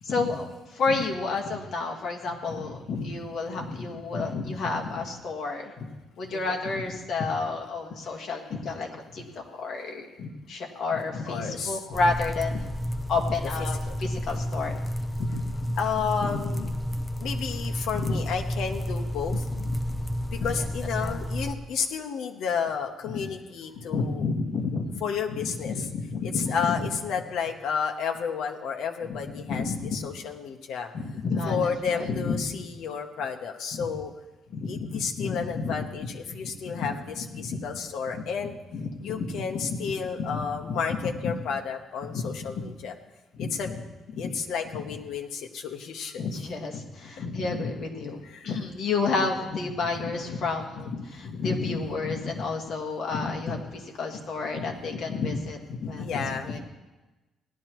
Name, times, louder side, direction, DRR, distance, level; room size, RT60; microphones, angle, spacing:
voice 1, 0.0-5.7 6.2-12.7 13.1-14.8 15.2-15.4 16.2-16.7 17.9-18.2 19.8-20.0 20.4-20.7 21.0-21.1 23.1-23.2 23.9-25.0 25.3-26.8 29.1-30.0 30.9-32.6 33.7-33.9 34.5-36.1 36.4-36.9 37.3-37.6 38.1-38.2 38.7-39.8 40.2-41.3 42.1-42.2 42.6-42.7 43.4-43.7 44.2-44.3 46.2-56.6, left 4 dB, 45° left, 1 dB, 1.6 m, -31 dB
voice 2, 11.3-11.8 13.9-14.0 15.8-16.7 17.2-19.5 20.3-24.3 25.0-25.9 26.2-30.9 31.4-34.1 34.7-38.6 39.0-42.9 43.4-43.7 44.2-46.3 48.2-48.5 56.0-56.5, left 6 dB, 65° left, 3 dB, 0.9 m, -32 dB
sound 1, 11.9-21.5, equal, 5° left, 0.5 m, -31 dB
18.0 x 11.5 x 3.0 m, 1.1 s
cardioid pair, 180°, 0 cm